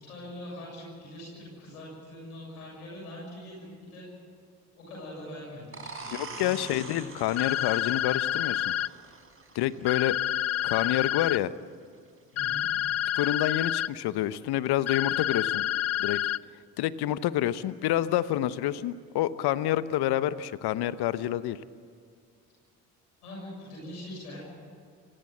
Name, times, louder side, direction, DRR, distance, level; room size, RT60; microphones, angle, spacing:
voice 1, 0.0-4.1 4.8-6.8 12.3-12.6 23.2-24.4, left 1 dB, 85° left, -4 dB, 7.1 m, -43 dB
sound 1, 5.7-11.1, right 4 dB, 30° right, 4.6 m, -45 dB
voice 2, 6.2-8.7 9.5-10.2 10.6-11.5 13.2-15.7 16.0-16.2 16.8-21.6, left 13 dB, 60° left, 16 dB, 1.0 m, -28 dB
sound 2, 7.4-8.9 9.9-11.4 12.4-13.9 14.9-16.4, left 12 dB, 35° left, 0.5 m, -28 dB
29.5 x 15.5 x 7.9 m, 2.3 s
hypercardioid pair, 50°, 44 cm